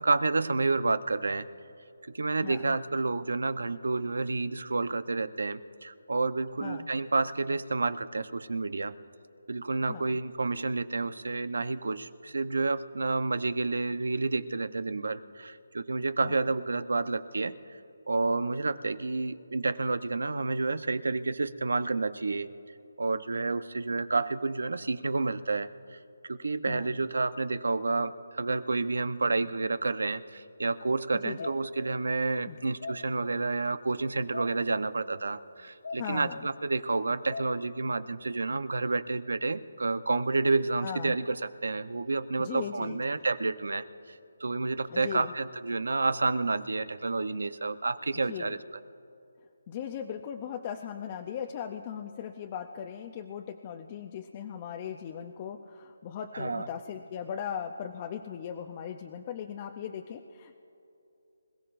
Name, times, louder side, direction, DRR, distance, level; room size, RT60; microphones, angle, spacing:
voice 1, 0.0-1.4 2.0-8.9 9.5-17.8 18.1-22.5 23.0-48.6 56.3-56.7, right 3 dB, 80° right, 13 dB, 0.8 m, -30 dB
voice 2, 2.4-2.8 6.6-6.9 9.9-10.2 16.2-16.5 26.7-27.0 31.2-31.5 32.4-32.6 36.0-36.5 40.8-41.2 42.4-43.2 44.9-45.3 48.3-48.6 49.7-60.6, left 8 dB, 25° left, 5 dB, 0.6 m, -38 dB
sound 1, 30.6-30.7 31.1-32.1 32.5-33.5 34.0-34.1 34.3-35.0 35.5-35.6 35.8-36.5 37.0-37.5, left 3 dB, 70° left, 2.6 m, -41 dB
26.0 x 16.0 x 2.6 m, 2.9 s
hypercardioid pair, 165°, 0 cm